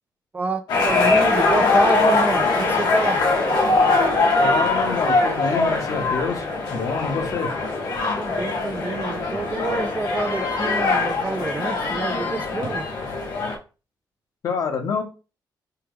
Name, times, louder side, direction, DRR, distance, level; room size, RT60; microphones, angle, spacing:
voice 1, 0.3-3.3 8.1-12.9, right 3 dB, 20° right, 0.4 m, -28 dB
sound 1, 0.7-13.6, left 3 dB, 70° left, 1.2 m, -22 dB
voice 2, 4.4-7.5 14.4-15.0, left 5 dB, 50° left, 0.9 m, -27 dB
5.6 x 2.3 x 3.5 m
wide cardioid pair, 175°, 7 cm